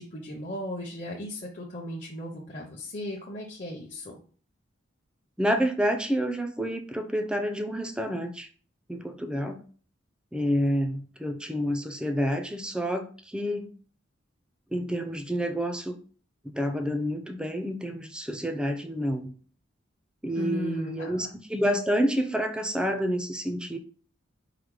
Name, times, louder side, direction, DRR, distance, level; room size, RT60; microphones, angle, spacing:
voice 1, 0.0-4.2 20.4-21.3, left 1 dB, 40° left, -3 dB, 0.7 m, -36 dB
voice 2, 5.4-8.5 8.9-9.6 10.3-13.7 14.7-16.0 16.4-19.3 20.2-23.8, equal, 5° right, 6 dB, 0.4 m, -28 dB
4.9 x 2.1 x 4.7 m, 0.42 s
head